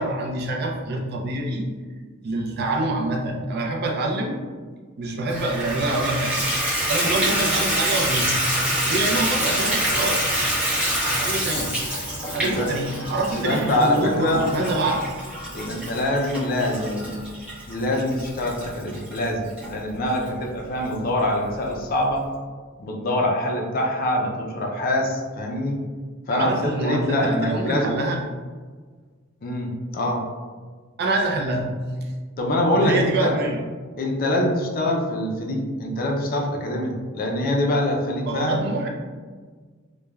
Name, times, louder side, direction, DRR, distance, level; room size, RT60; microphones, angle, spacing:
voice 1, 0.0-1.7 2.2-4.4 5.0-6.4 6.9-8.3 8.9-10.5 11.0-11.7 12.2-15.0 26.3-28.2 31.0-31.7 32.0-32.1 32.8-33.6 38.2-38.9, right 2 dB, 50° right, 0 dB, 0.4 m, -26 dB
Water tap faucet / Bathtub (filling or washing), 5.3-19.7 20.3-20.4 20.9-21.0 21.2-21.3, right 1 dB, 5° right, 0.8 m, -26 dB
voice 2, 13.3-14.4 15.5-17.1 17.7-22.2 22.8-25.8 26.3-27.9 29.4-30.2 32.4-33.3 34.0-38.7, left 1 dB, 45° left, 1 dB, 0.4 m, -24 dB
3.1 x 2.1 x 2.3 m, 1.5 s
head